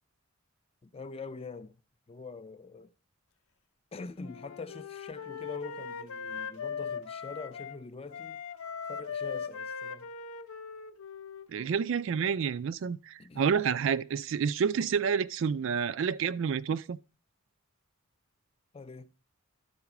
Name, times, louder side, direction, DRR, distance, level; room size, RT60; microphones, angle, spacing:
voice 1, 0.8-1.8 2.1-2.9 3.9-8.4 8.9-10.1 13.2-13.6 18.7-19.1, left 4 dB, 25° left, 0.4 m, -44 dB
Wind instrument woodwind instrument, 4.2-7.8 8.1-11.9, left 6 dB, 80° left, 0.6 m, -40 dB
voice 2, 11.5-17.0, right 6 dB, 60° right, 0.3 m, -29 dB
12.0 x 4.0 x 5.9 m
head